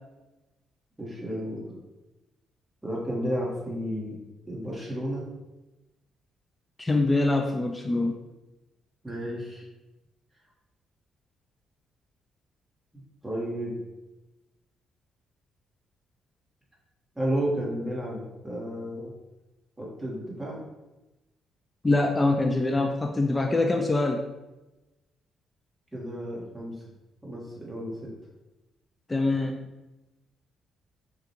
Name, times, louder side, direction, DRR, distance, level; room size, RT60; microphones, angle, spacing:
voice 1, 1.0-1.8 2.8-4.2 4.5-5.3 9.0-9.6 13.2-13.7 17.1-19.1 19.8-20.6 25.9-26.7 27.2-28.1, equal, 10° right, -4 dB, 1.4 m, -32 dB
voice 2, 6.8-8.2 21.8-24.2 29.1-29.6, left 2 dB, 15° left, 2 dB, 0.3 m, -24 dB
5.8 x 2.2 x 3.0 m, 1.0 s
cardioid pair, 100°, 0 cm